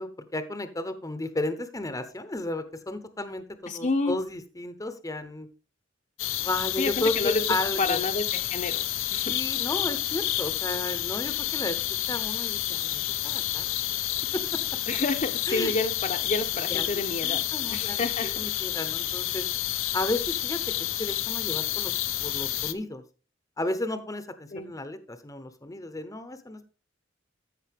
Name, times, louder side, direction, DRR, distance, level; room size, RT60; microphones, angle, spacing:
voice 1, 0.0-5.5 6.4-8.0 9.3-11.8 12.1-13.7 14.3-14.6 15.5-15.7 16.7-19.5 19.9-23.0 23.6-26.6, left 2 dB, 15° left, 10 dB, 0.8 m, -33 dB
voice 2, 3.7-4.2 6.8-7.4 7.8-8.8 9.1-9.3 14.9-17.4 17.7-18.3 24.5-24.7, left 3 dB, 40° left, 6 dB, 0.8 m, -29 dB
sound 1, 6.2-22.7, left 13 dB, 85° left, 0.7 m, -29 dB
14.0 x 5.5 x 3.5 m, 0.34 s
head